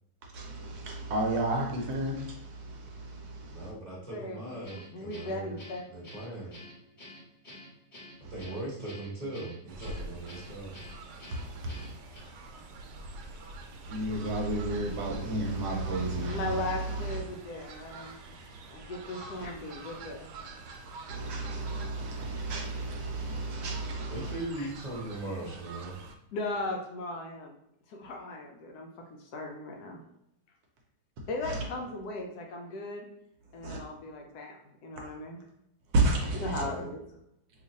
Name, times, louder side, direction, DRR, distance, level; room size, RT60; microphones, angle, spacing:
voice 1, 0.3-3.7 8.2-8.3 11.3-11.9 13.8-17.2 21.1-24.3 31.4-31.6 33.6-33.8 35.9-36.6, right 2 dB, 70° right, 0 dB, 1.1 m, -32 dB
voice 2, 3.5-6.5 8.2-10.8 24.1-26.0 36.5-36.9, right 2 dB, 30° right, -6 dB, 0.9 m, -39 dB
voice 3, 4.1-5.8 16.3-18.3 18.7-20.3 24.6-24.7 26.3-27.5 27.9-30.0 31.3-33.1 33.5-35.4 36.3-37.1, left 2 dB, 70° left, 1 dB, 1.0 m, -37 dB
Guitar, 4.6-12.2, left 1 dB, 30° left, 1.1 m, -49 dB
Fowl, 9.7-26.1, right 2 dB, 90° right, 1.2 m, -46 dB
2.9 x 2.4 x 3.9 m, 0.80 s
omnidirectional pair, 1.9 m